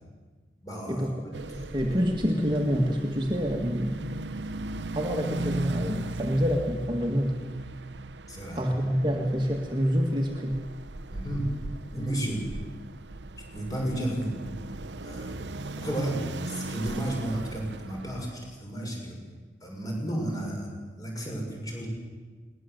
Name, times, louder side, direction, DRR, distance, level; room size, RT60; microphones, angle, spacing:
voice 1, 0.6-1.7 8.3-8.6 11.1-11.5 11.9-12.4 13.5-14.4 15.0-15.5 15.8-16.2 16.5-19.2 19.6-21.9, right 1 dB, 20° left, 0 dB, 6.3 m, -33 dB
sound 1, 1.3-18.4, right 2 dB, 80° right, 0.9 m, -38 dB
voice 2, 1.7-4.0 4.9-7.4 8.5-10.6, equal, 25° right, 1 dB, 1.8 m, -27 dB
21.0 x 20.0 x 8.0 m, 1.4 s
head